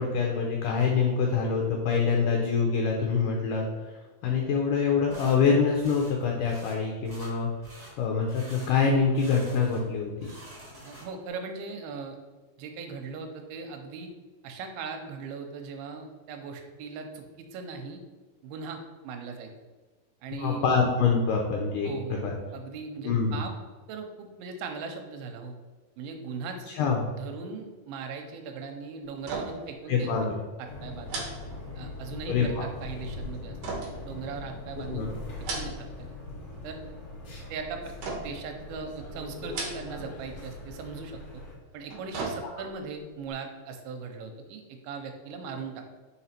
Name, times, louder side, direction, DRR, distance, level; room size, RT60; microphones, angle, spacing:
voice 1, 0.0-3.7 4.2-7.5 8.0-10.1 20.4-21.9 22.2-22.3 23.0-23.4 26.8-27.1 29.9-30.3 32.3-32.7 34.9-35.1 42.4-42.5, left 5 dB, 80° left, 0 dB, 1.9 m, -25 dB
sound 1, 5.1-5.4 5.8-6.2 6.4-6.8 7.0-7.3 7.6-7.9 8.3-8.7 9.1-9.9 10.1-11.3, equal, 30° right, 1.3 m, -47 dB
voice 2, 10.9-12.2 12.6-14.1 14.4-18.0 18.4-19.5 20.2-20.7 21.8-22.3 22.5-23.5 23.9-25.6 26.0-26.7 27.1-30.1 30.6-31.2 31.8-35.1 35.5-36.1 36.6-36.8 37.5-41.4 41.7-45.9, right 4 dB, 90° right, 5 dB, 2.5 m, -39 dB
sound 2, 29.2-29.8 30.0-30.2 31.1-32.2 33.6-34.7 35.3-36.0 36.4-36.9 38.0-38.5 39.4-40.1 40.4-40.6 41.7-42.8 43.2-43.3, right 3 dB, 70° right, 1.6 m, -37 dB
sound 3, 30.6-41.6, left 2 dB, 55° left, 1.6 m, -41 dB
5.3 x 4.1 x 4.3 m, 1.3 s
omnidirectional pair, 4.4 m